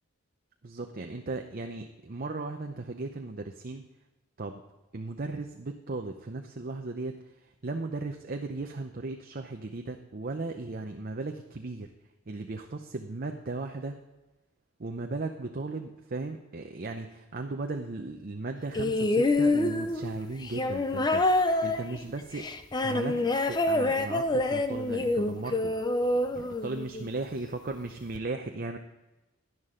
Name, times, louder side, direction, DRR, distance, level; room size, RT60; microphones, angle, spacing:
voice 1, 0.6-3.8 4.4-4.6 4.9-11.9 12.3-14.0 14.8-22.5 22.8-23.2 23.5-25.7 26.3-28.8, right 3 dB, 45° right, 4 dB, 0.7 m, -36 dB
sound 1, 18.7-27.1 28.1-28.2, left 2 dB, 20° left, 0.6 m, -27 dB
11.5 x 11.0 x 3.8 m, 1.0 s
head